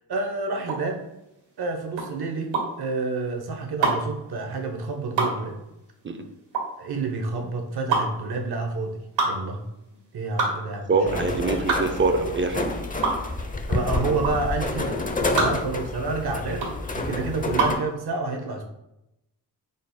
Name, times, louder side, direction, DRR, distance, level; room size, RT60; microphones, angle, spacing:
voice 1, 0.1-1.0 1.6-5.6 6.8-9.6 10.1-11.3 13.7-15.0 15.4-16.7 16.9-18.6, right 3 dB, 60° right, 4 dB, 0.9 m, -29 dB
sound 1, 0.6-17.9, right 3 dB, 80° right, 1.5 m, -28 dB
voice 2, 10.9-12.7 15.3-15.5, right 3 dB, 30° right, 7 dB, 0.5 m, -24 dB
sound 2, 11.1-17.8, left 2 dB, 20° left, 0.6 m, -29 dB
5.1 x 2.0 x 4.1 m, 0.89 s
cardioid pair, 55°, 43 cm